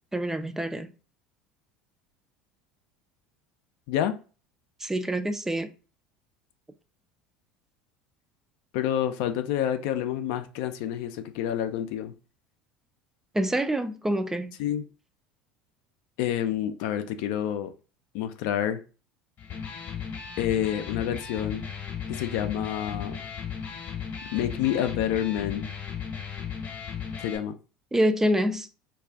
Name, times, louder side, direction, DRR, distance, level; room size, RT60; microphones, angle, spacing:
voice 1, 0.1-0.9 4.8-5.7 13.3-14.6 27.9-28.7, right 1 dB, 10° right, 0.3 m, -26 dB
voice 2, 8.7-12.1 14.6-14.9 16.2-17.7 18.1-18.8 20.4-21.7 22.1-23.2 24.3-25.7 27.2-27.6, left 10 dB, 60° left, 0.4 m, -28 dB
Electric guitar, 19.4-27.4, left 7 dB, 40° left, 0.9 m, -36 dB
2.4 x 2.3 x 3.4 m
hypercardioid pair, 75°, 5 cm